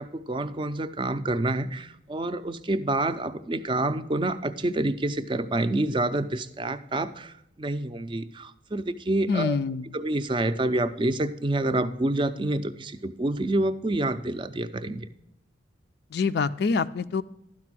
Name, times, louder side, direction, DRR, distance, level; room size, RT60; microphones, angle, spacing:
voice 1, 0.0-9.6 9.9-15.1, right 2 dB, 25° right, 11 dB, 0.4 m, -28 dB
voice 2, 9.3-9.9 16.1-17.2, left 5 dB, 55° left, 13 dB, 0.4 m, -26 dB
12.0 x 5.1 x 6.0 m, 0.80 s
head